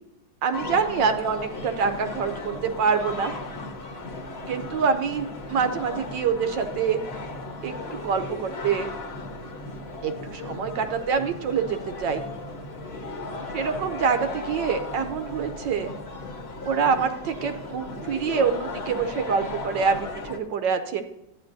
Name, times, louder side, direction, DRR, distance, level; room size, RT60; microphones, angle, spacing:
voice 1, 0.4-3.3 4.5-7.0 7.6-8.9 10.0-12.2 13.3-15.9 16.7-21.0, right 6 dB, 70° right, 8 dB, 1.3 m, -26 dB
sound 1, 0.5-20.4, left 2 dB, 40° left, 1.1 m, -36 dB
13.0 x 9.4 x 2.6 m, 0.87 s
omnidirectional pair, 2.2 m